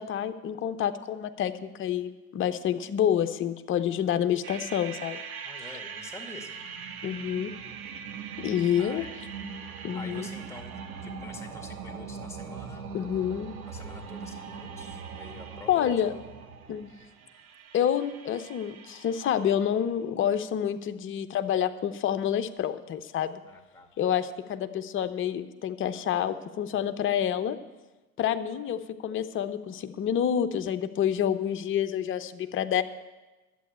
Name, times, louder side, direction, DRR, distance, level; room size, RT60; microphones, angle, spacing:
voice 1, 0.0-5.2 7.0-7.5 8.4-9.0 9.8-10.3 12.9-13.5 15.7-16.1 16.7-16.9 17.7-23.4 24.0-27.6 28.2-32.8, left 9 dB, 30° left, 9 dB, 0.7 m, -28 dB
sound 1, 4.4-19.7, right 6 dB, 80° right, 1.1 m, -41 dB
voice 2, 5.4-6.6 8.8-9.4 9.9-10.7 11.0-12.9 13.7-15.9 23.5-23.9, left 2 dB, 5° left, 4 dB, 1.9 m, -46 dB
11.5 x 7.7 x 8.4 m, 1.1 s
hypercardioid pair, 75°, 43 cm